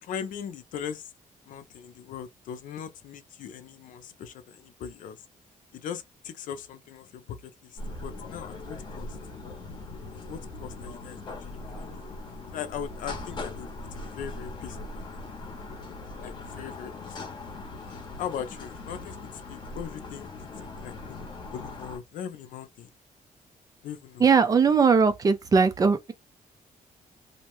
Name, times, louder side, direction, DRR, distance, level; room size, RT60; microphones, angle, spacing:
voice 1, 0.0-1.1 1.5-5.2 5.7-9.2 10.3-12.1 12.5-15.2 16.2-17.2 17.8-20.3 20.6-21.3 21.5-22.9 23.8-24.2, left 8 dB, 70° left, 0.6 m, -40 dB
sound 1, 7.8-22.0, left 2 dB, 35° left, 0.8 m, -40 dB
voice 2, 24.2-26.1, right 5 dB, 25° right, 0.4 m, -20 dB
2.7 x 2.1 x 2.9 m
cardioid pair, 180°, 14 cm